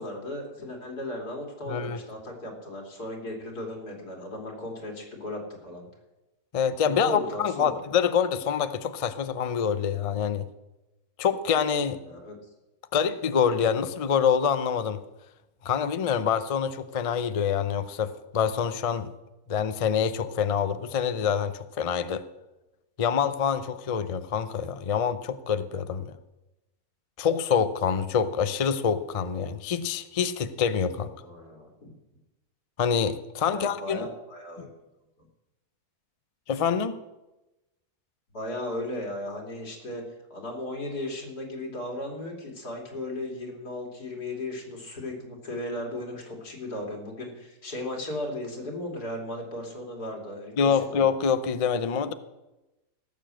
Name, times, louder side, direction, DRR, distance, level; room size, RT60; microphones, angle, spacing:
voice 1, 0.0-5.9 7.0-7.8 12.0-12.4 30.9-31.9 33.4-34.7 38.3-40.0 40.3-51.0, left 1 dB, 80° left, 1 dB, 3.3 m, -36 dB
voice 2, 1.7-2.0 6.5-10.4 11.2-12.0 12.9-15.0 15.6-19.1 19.5-22.3 23.0-26.1 27.2-31.1 32.8-34.0 34.6-34.7 36.5-37.0 50.6-52.1, left 7 dB, 60° left, 12 dB, 0.3 m, -26 dB
17.5 x 7.0 x 7.6 m, 1.0 s
omnidirectional pair, 1.6 m